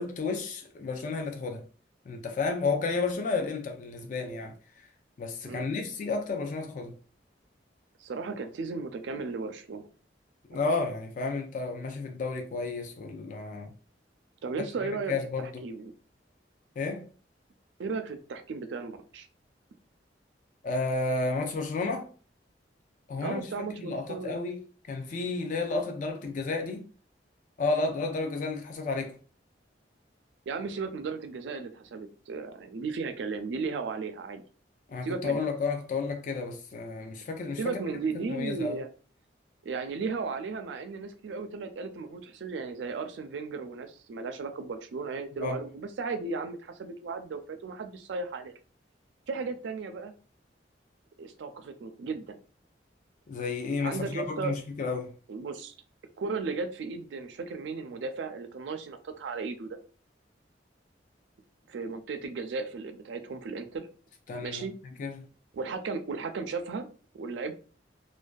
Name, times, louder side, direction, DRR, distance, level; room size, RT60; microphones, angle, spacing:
voice 1, 0.0-1.6 2.1-4.5 5.2-6.9 10.5-13.7 15.1-15.5 16.8-17.0 20.6-22.1 23.1-23.5 23.8-24.6 24.9-26.8 27.6-29.2 34.9-37.8 38.1-38.8 45.4-45.6 53.3-55.1 64.3-64.7 65.0-65.3, left 3 dB, 45° left, 0.3 m, -32 dB
voice 2, 8.0-9.9 14.4-15.9 17.8-19.3 23.2-24.4 30.5-34.4 35.0-35.5 37.6-38.9 39.6-48.5 49.3-50.1 51.2-52.4 53.8-54.5 55.3-55.7 56.2-59.8 61.7-63.9 64.4-64.7 65.5-66.9 67.1-67.5, right 4 dB, 85° right, 0.4 m, -35 dB
2.5 x 2.2 x 2.2 m
head